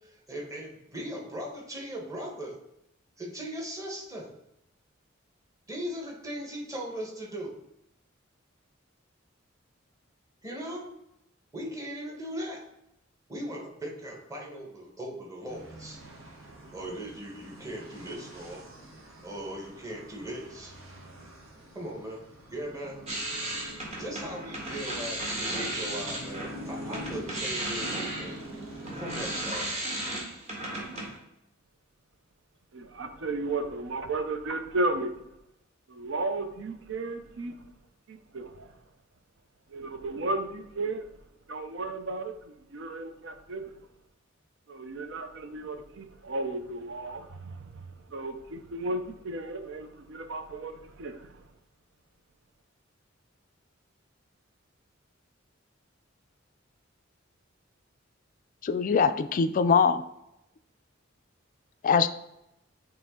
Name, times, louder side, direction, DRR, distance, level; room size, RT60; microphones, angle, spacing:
voice 1, 0.0-2.6 3.2-4.3 5.7-7.6 10.4-10.9 11.5-12.6 13.3-16.0 16.7-18.7 19.2-20.8 21.7-23.0 24.0-28.3 28.9-29.8, equal, 15° right, -1 dB, 1.2 m, -39 dB
sound 1, 15.5-29.4, right 1 dB, 85° right, 1.3 m, -45 dB
sound 2, 23.1-26.6 26.9-31.2, right 1 dB, 35° right, 1.5 m, -35 dB
voice 2, 32.7-35.2 35.9-37.6 38.1-38.8 39.7-41.0 41.5-43.7 44.7-51.5, right 2 dB, 65° right, 8 dB, 0.5 m, -34 dB
voice 3, 58.6-60.0 61.8-62.1, left 5 dB, 40° left, 11 dB, 0.3 m, -22 dB
8.5 x 3.1 x 3.7 m, 0.85 s
head